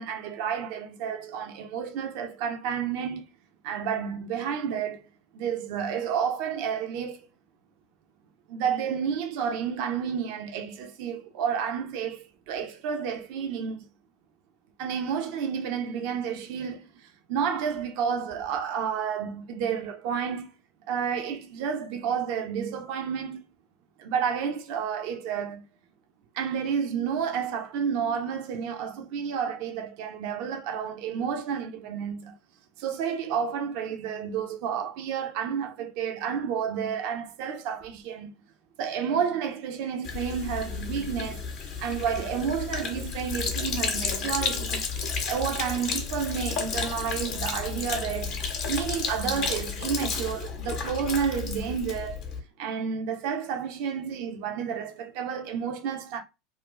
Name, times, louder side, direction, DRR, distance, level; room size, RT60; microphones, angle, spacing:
voice 1, 0.0-3.2 3.6-5.0 5.3-7.2 8.5-13.8 14.8-16.9 17.3-20.5 20.9-23.4 24.0-25.6 26.3-32.3 32.8-38.3 38.8-41.4 41.8-44.8 45.3-48.4 48.7-52.2 52.6-56.2, right 7 dB, 55° right, 0.6 m, -30 dB
Sink (filling or washing), 40.0-52.4, left 5 dB, 45° left, 0.9 m, -32 dB
2.6 x 2.3 x 3.7 m
figure-of-eight pair, 80°, 0 cm